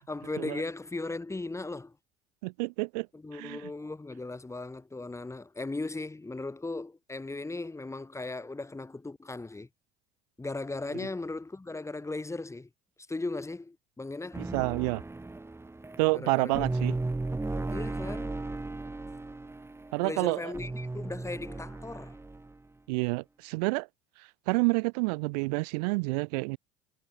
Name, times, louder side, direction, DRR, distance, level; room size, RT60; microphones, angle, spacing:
voice 1, 0.0-2.0 3.1-9.7 10.4-12.7 13.1-14.5 16.1-16.6 17.7-18.4 20.0-22.2, left 2 dB, 15° left, 2.8 m, -37 dB
voice 2, 2.4-3.1 3.3-3.6 10.9-11.1 14.4-15.0 16.0-17.0 19.9-20.5 22.9-23.9 24.5-26.6, right 28 dB, 75° right, 0.9 m, -29 dB
sound 1, 14.3-22.6, right 2 dB, 10° right, 2.0 m, -36 dB
hypercardioid pair, 75°, 20 cm